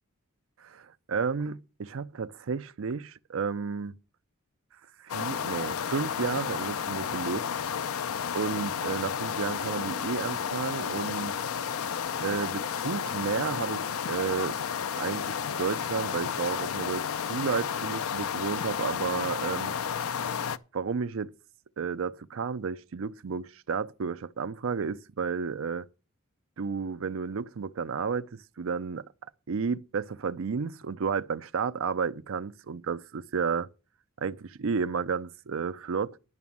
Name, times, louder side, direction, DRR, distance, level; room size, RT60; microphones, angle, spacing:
voice 1, 0.6-4.0 5.0-7.5 8.3-11.3 12.2-14.6 15.0-19.8 20.7-21.3 21.8-25.9 26.6-29.1 29.5-33.7 34.2-36.2, right 5 dB, 70° right, 0.5 m, -32 dB
sound 1, 5.1-20.6, left 7 dB, 80° left, 0.5 m, -32 dB
11.0 x 6.0 x 7.1 m
head